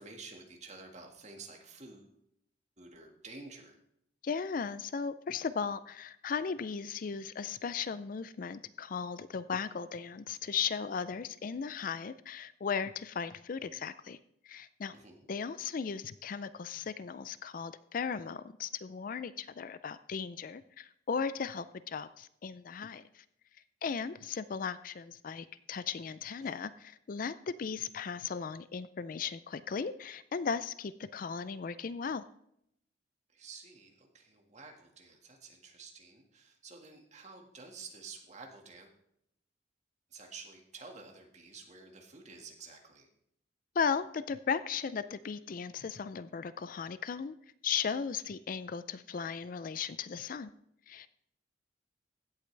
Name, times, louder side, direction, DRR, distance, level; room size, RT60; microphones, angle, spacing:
voice 1, 0.0-2.1 2.8-3.8 14.9-15.2 26.4-26.5 33.3-38.9 40.1-43.1, right 4 dB, 40° right, 2 dB, 1.8 m, -50 dB
voice 2, 4.2-14.2 14.4-14.9 15.3-23.2 23.8-32.2 43.8-47.3 47.6-50.5 50.9-51.1, left 6 dB, 50° left, 14 dB, 0.4 m, -36 dB
16.0 x 8.4 x 3.3 m, 0.74 s
head